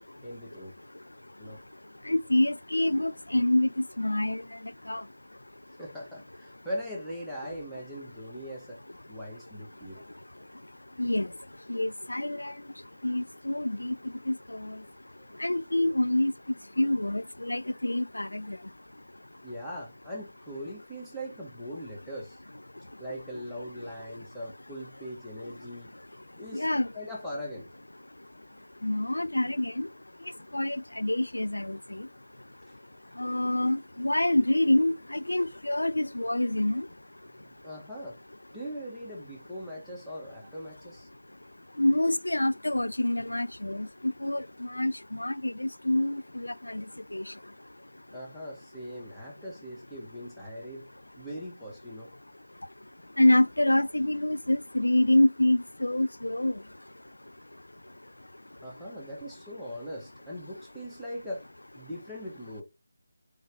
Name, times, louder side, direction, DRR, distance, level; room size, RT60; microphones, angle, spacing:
voice 1, 0.2-0.7 1.4-1.6 5.8-8.8 9.1-10.0 15.2-15.3 19.4-22.4 23.0-25.9 26.4-26.7 26.9-27.7 33.3-33.4 37.4-38.2 38.5-41.1 48.1-50.9 51.2-52.1 58.6-61.5 61.8-62.6, equal, 5° left, 1.7 m, -40 dB
voice 2, 2.1-3.7 4.0-4.4 4.9-5.0 11.0-11.3 11.7-12.5 13.0-13.9 14.3-14.8 15.4-16.3 16.8-18.6 26.5-26.9 28.8-29.9 30.5-32.0 33.2-36.9 41.8-43.9 44.2-46.8 47.1-47.2 53.2-56.5, left 1 dB, 80° left, 0.4 m, -26 dB
6.1 x 5.0 x 3.0 m
figure-of-eight pair, 155°, 0 cm